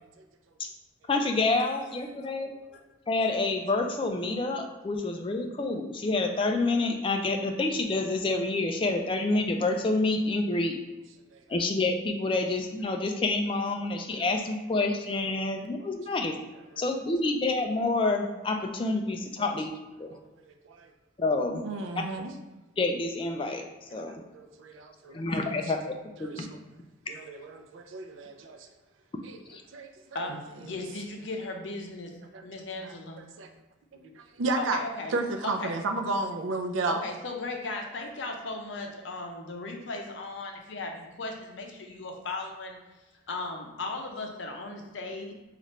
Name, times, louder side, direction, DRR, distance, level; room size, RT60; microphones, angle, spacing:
voice 1, 1.1-2.5 3.1-10.8 11.5-16.4 16.8-19.7 20.0-20.1 21.2-21.6 22.8-23.6 23.9-24.2 25.1-25.8 26.2-26.5 29.5-29.6, left 2 dB, 25° left, 4 dB, 0.3 m, -28 dB
voice 2, 20.4-20.9 21.6-22.3 24.0-25.5 26.2-26.6 27.1-28.7 29.2-29.4 29.7-30.2 32.3-32.4 32.8-33.5 33.9-34.8 35.1-37.0, right 3 dB, 85° right, 5 dB, 0.4 m, -33 dB
voice 3, 30.1-32.1 32.4-33.2 34.6-35.1 35.4-35.8 36.9-42.8 43.3-45.3, left 2 dB, 70° left, 2 dB, 0.6 m, -36 dB
3.2 x 2.5 x 4.1 m, 1.1 s
head